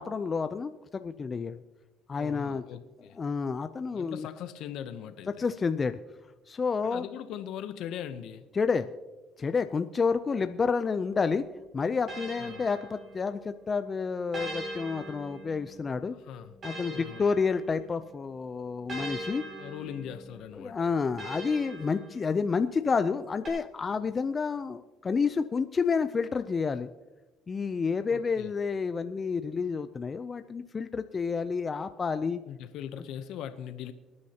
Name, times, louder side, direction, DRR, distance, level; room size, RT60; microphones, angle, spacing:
voice 1, 0.0-1.6 2.1-2.6 3.2-4.3 5.4-6.0 6.5-7.1 8.5-8.9 9.4-11.4 11.7-16.1 16.6-19.4 20.6-26.9 27.5-32.4, left 5 dB, 30° left, 10 dB, 0.5 m, -29 dB
voice 2, 2.1-3.2 3.9-5.5 6.8-8.5 12.4-12.7 16.1-16.6 16.9-17.3 19.6-20.8 28.1-28.5 32.5-33.9, left 9 dB, 75° left, 10 dB, 0.8 m, -40 dB
sound 1, 11.1-13.6 14.3-18.1 18.9-22.7 23.4-23.5, right 1 dB, 40° right, 4.7 m, -42 dB
24.0 x 9.6 x 2.9 m, 1.2 s
cardioid pair, 110°, 0 cm